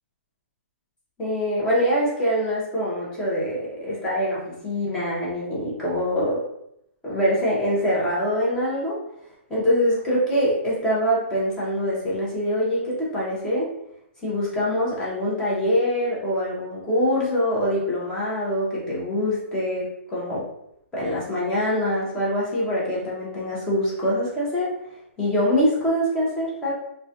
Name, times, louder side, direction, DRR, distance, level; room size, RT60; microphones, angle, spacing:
voice 1, 1.2-6.4 7.0-9.0 9.5-13.7 14.2-20.4 20.9-24.7 25.2-26.7, equal, 10° left, -7 dB, 0.6 m, -24 dB
2.3 x 2.1 x 2.7 m, 0.77 s
hypercardioid pair, 170°, 7 cm